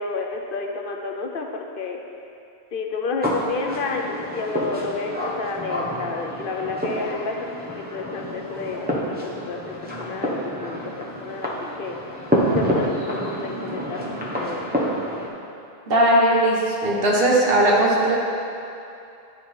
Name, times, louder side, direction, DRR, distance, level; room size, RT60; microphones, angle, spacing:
voice 1, 0.0-2.0 2.7-7.4 7.7-9.2 9.5-10.8 11.2-11.5 11.8-14.0 14.3-14.7, left 4 dB, 60° left, 2 dB, 0.8 m, -30 dB
sound 1, 3.2-15.3, equal, 10° right, 0.9 m, -28 dB
voice 2, 15.9-18.2, right 1 dB, 65° right, -3 dB, 1.5 m, -18 dB
10.5 x 4.8 x 4.3 m, 2.6 s
omnidirectional pair, 1.0 m